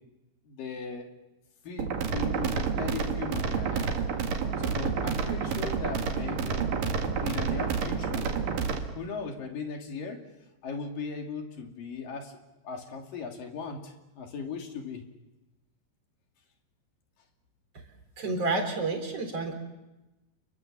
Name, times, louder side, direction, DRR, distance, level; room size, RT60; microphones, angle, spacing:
voice 1, 0.5-1.1 1.6-4.0 4.6-6.8 7.2-8.3 9.0-10.3 10.6-12.4 12.6-15.0, left 5 dB, 55° left, 3 dB, 3.8 m, -38 dB
sound 1, 1.8-8.8, right 6 dB, 55° right, 3.3 m, -29 dB
voice 2, 18.2-19.5, right 3 dB, 35° right, 4 dB, 4.4 m, -29 dB
30.0 x 22.5 x 7.4 m, 1.0 s
omnidirectional pair, 5.3 m